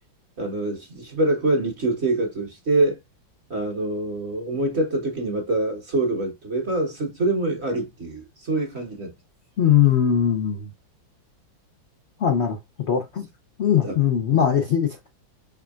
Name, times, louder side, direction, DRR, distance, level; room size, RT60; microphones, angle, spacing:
voice 1, 0.4-3.0 3.5-9.1 13.8-14.0 14.3-14.4, right 2 dB, 40° right, 1.0 m, -25 dB
voice 2, 9.6-10.7 12.2-12.6 12.9-13.3 13.6-15.1, left 9 dB, 75° left, 0.6 m, -20 dB
5.1 x 3.5 x 2.3 m
omnidirectional pair, 2.1 m